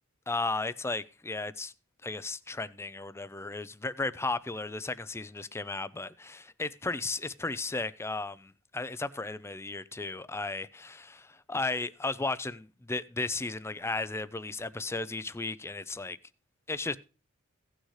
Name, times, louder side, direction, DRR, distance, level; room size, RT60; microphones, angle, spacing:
voice 1, 0.3-1.7 2.0-16.2 16.7-17.0, left 3 dB, 10° left, 0.4 m, -35 dB
16.5 x 6.4 x 3.2 m
head